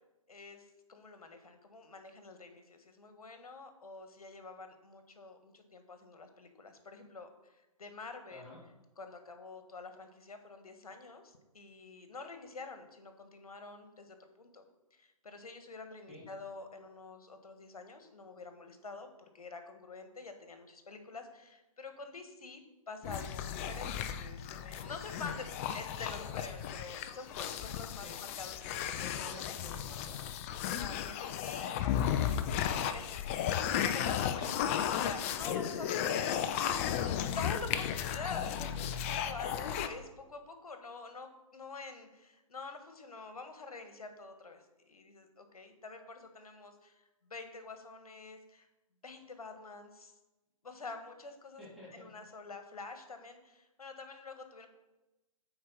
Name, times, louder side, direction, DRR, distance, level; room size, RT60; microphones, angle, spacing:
voice 1, 0.3-8.5 9.0-14.6 14.9-22.6 22.9-29.0 30.6-48.7 49.0-50.1 50.6-51.6 51.9-54.7, left 3 dB, 85° left, 7 dB, 1.4 m, -47 dB
sound 1, 23.0-39.9, left 9 dB, 25° left, 0.4 m, -34 dB
voice 2, 29.0-30.3 51.6-52.1, left 1 dB, ahead, -9 dB, 3.0 m, -50 dB
8.7 x 4.4 x 5.6 m, 1.0 s
hypercardioid pair, 140°, 18 cm